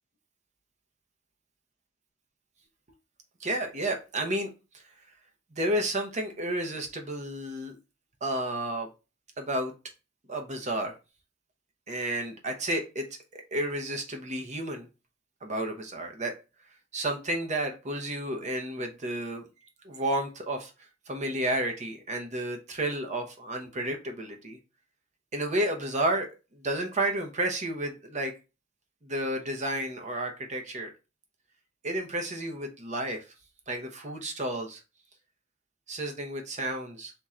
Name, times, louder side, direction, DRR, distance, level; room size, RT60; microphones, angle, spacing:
voice 1, 3.4-4.5 4.7-4.8 5.5-7.8 8.2-8.9 9.4-9.7 10.3-11.0 11.9-13.1 13.3-14.9 15.4-16.3 16.9-19.5 19.8-20.7 21.1-24.6 25.3-28.3 29.0-30.9 31.8-33.2 33.7-34.8 35.9-37.1, right 1 dB, 40° right, 4 dB, 0.9 m, -31 dB
3.7 x 2.8 x 4.3 m, 0.29 s
head